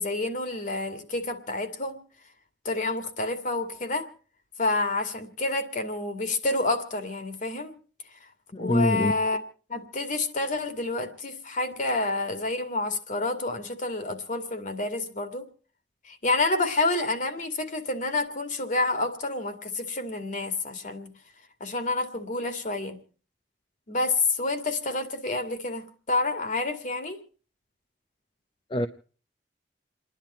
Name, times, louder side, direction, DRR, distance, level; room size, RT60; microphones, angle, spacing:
voice 1, 0.0-2.0 2.6-4.1 4.6-7.7 8.6-9.4 9.7-15.5 16.0-21.1 21.6-23.0 23.9-27.2, left 2 dB, 45° left, 2.4 m, -28 dB
voice 2, 8.5-9.2 28.7-28.9, left 1 dB, 30° left, 0.8 m, -24 dB
29.0 x 11.0 x 4.3 m
head